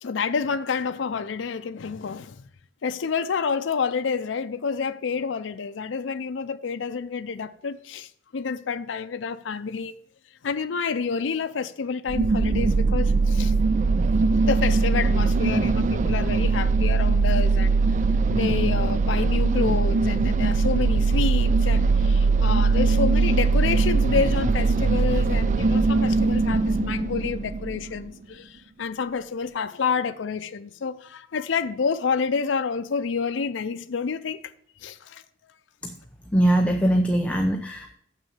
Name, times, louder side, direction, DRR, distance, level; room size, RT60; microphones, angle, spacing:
voice 1, 0.0-2.4 2.8-9.9 10.4-13.6 14.2-17.8 18.3-34.4 34.8-35.2, left 5 dB, 85° left, 0.5 m, -28 dB
sound 1, 12.1-28.0, right 4 dB, 40° right, 0.3 m, -21 dB
voice 2, 36.3-37.9, right 1 dB, 5° left, 0.7 m, -22 dB
7.5 x 6.1 x 7.0 m
head